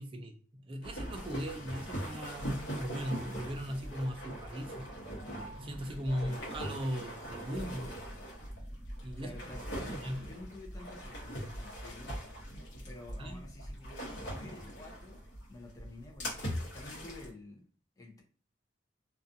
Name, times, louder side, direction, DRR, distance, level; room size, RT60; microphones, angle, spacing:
voice 1, 0.0-4.9 5.6-7.9 9.0-9.5 9.8-10.2 13.2-13.4, equal, 30° right, 0.4 m, -38 dB
sound 1, 0.8-17.3, equal, 70° left, 1.0 m, -41 dB
sound 2, 1.9-6.9, right 2 dB, 45° left, 1.0 m, -55 dB
voice 2, 9.2-12.2 12.9-15.2 15.5-17.7 18.0-18.2, left 2 dB, 20° left, 0.6 m, -50 dB
2.4 x 2.3 x 2.6 m
head